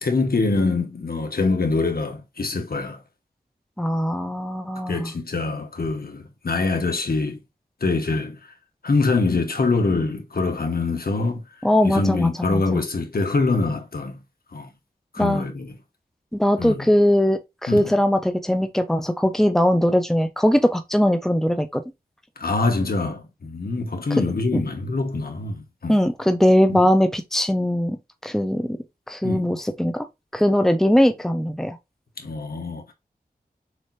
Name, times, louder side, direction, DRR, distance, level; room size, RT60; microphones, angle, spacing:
voice 1, 0.0-3.0 4.9-7.4 7.8-8.4 8.8-11.4 11.8-14.2 14.5-14.7 15.1-15.7 16.6-16.9 17.7-17.9 22.4-25.9 26.7-26.8 29.2-29.5 32.2-32.9, left 3 dB, 70° left, 1.4 m, -24 dB
voice 2, 3.8-5.1 11.6-12.8 15.2-15.4 16.3-21.8 24.1-24.2 24.5-24.6 25.9-28.0 28.2-28.8 29.1-30.1 30.3-31.8, equal, ahead, 0.9 m, -20 dB
6.6 x 2.9 x 2.7 m
wide cardioid pair, 55°, 16 cm